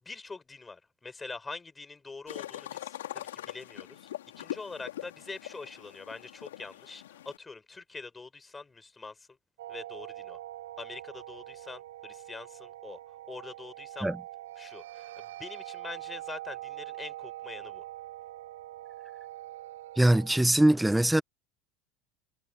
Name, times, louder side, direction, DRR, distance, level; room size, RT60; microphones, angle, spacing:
voice 1, 0.0-4.1 4.4-9.4 9.7-10.4 10.8-13.0 13.3-14.1 14.6-17.8, left 3 dB, 20° left, 6.0 m, -44 dB
sound 1, 2.3-7.4, left 13 dB, 80° left, 2.4 m, -42 dB
sound 2, 9.6-20.4, right 15 dB, 80° right, 3.9 m, -44 dB
voice 2, 20.0-21.2, right 1 dB, 5° right, 0.9 m, -22 dB
hypercardioid pair, 80°, 0 cm